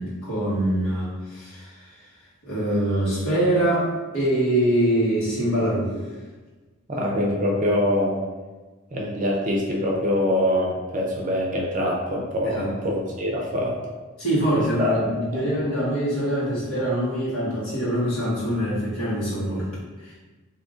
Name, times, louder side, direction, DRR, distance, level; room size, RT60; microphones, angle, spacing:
voice 1, 0.0-1.7 2.4-3.9 4.1-5.9 12.4-12.7 14.2-19.7 20.0-20.2, right 1 dB, 75° left, -9 dB, 1.5 m, -24 dB
voice 2, 6.9-8.1 8.9-13.8 14.6-15.4, left 1 dB, 35° right, -1 dB, 0.5 m, -24 dB
2.8 x 2.5 x 3.6 m, 1.3 s
head